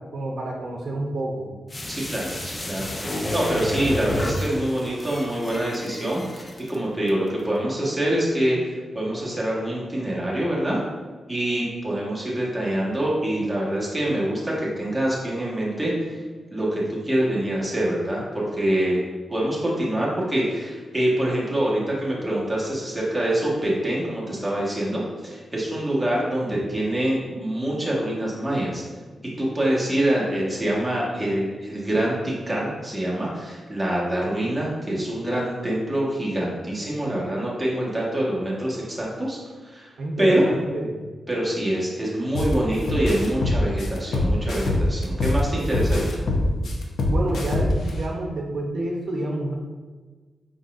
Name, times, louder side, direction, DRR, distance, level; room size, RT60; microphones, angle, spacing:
voice 1, 0.1-1.5 40.0-41.0 47.0-49.5, right 1 dB, 65° right, -1 dB, 0.7 m, -29 dB
sound 1, 1.7-6.7 7.1-7.2, left 1 dB, 25° left, 0.6 m, -30 dB
voice 2, 1.9-10.8 11.3-16.1 16.5-28.8 29.4-39.4 39.6-39.9 40.2-40.4 41.3-46.3, right 1 dB, 5° right, -6 dB, 1.3 m, -25 dB
sound 2, 42.3-42.5 42.9-45.4 45.7-47.9, left 2 dB, 70° left, 0.7 m, -23 dB
5.0 x 3.9 x 2.5 m, 1.4 s
cardioid pair, 105°, 0 cm